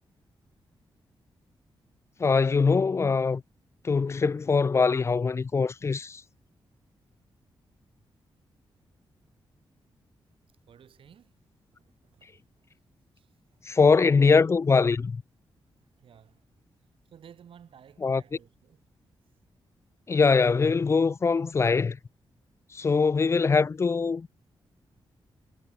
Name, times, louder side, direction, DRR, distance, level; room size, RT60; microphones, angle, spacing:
voice 1, 2.2-3.4 3.8-6.2 13.7-15.2 18.0-18.2 20.1-22.0 22.7-24.3, left 4 dB, 30° left, 0.4 m, -22 dB
voice 2, 10.7-11.3 11.7-12.7 13.2-14.1 15.8-16.5 17.1-18.8 24.9-25.0, right 8 dB, 80° right, 5.3 m, -55 dB
cardioid pair, 105°, 9 cm